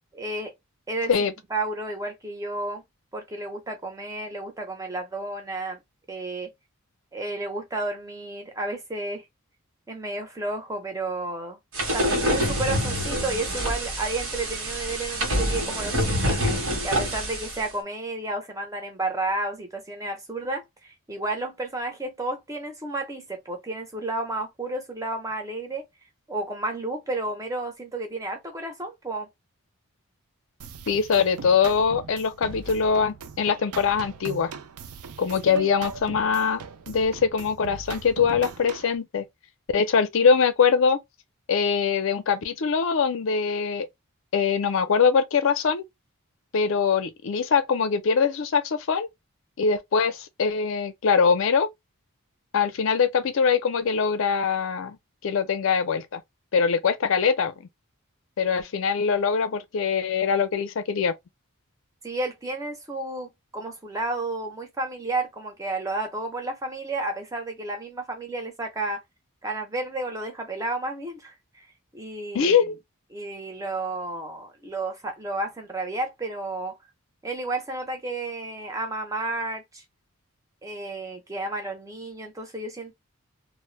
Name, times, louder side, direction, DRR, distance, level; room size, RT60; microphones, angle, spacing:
voice 1, 0.1-0.5 0.9-2.8 3.1-5.8 6.1-6.5 7.1-9.2 9.9-11.6 11.9-25.8 26.3-29.3 35.4-35.9 39.8-39.9 62.0-69.0 69.4-71.7 71.9-72.6 73.1-76.8 77.2-79.8 80.6-82.9, right 2 dB, 15° right, 0.5 m, -32 dB
sound 1, 11.7-17.6, equal, 60° right, 1.0 m, -26 dB
sound 2, 30.6-39.0, right 5 dB, 80° right, 0.4 m, -40 dB
voice 2, 30.9-34.5 35.2-36.6 36.9-39.2 39.7-41.0 41.5-43.9 44.3-45.8 46.5-49.1 49.6-51.7 52.5-55.0 55.2-56.2 56.5-57.5 58.4-61.1 72.3-72.8, left 6 dB, 60° left, 0.4 m, -23 dB
2.0 x 2.0 x 3.0 m
head